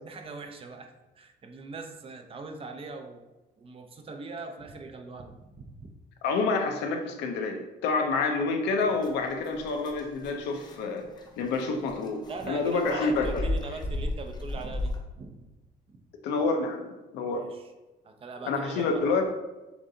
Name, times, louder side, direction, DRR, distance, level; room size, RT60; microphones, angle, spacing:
voice 1, 0.0-5.9 12.3-15.4 15.9-16.0 17.3-17.6 18.0-19.1, right 3 dB, 35° right, 5 dB, 0.6 m, -41 dB
voice 2, 6.2-11.1 11.4-12.2 12.5-13.5 16.2-17.5 18.4-19.2, left 4 dB, 85° left, 4 dB, 0.7 m, -28 dB
sound 1, 8.8-15.0, left 1 dB, 25° left, 0.7 m, -36 dB
6.9 x 2.6 x 2.7 m, 1.1 s
cardioid pair, 110°, 17 cm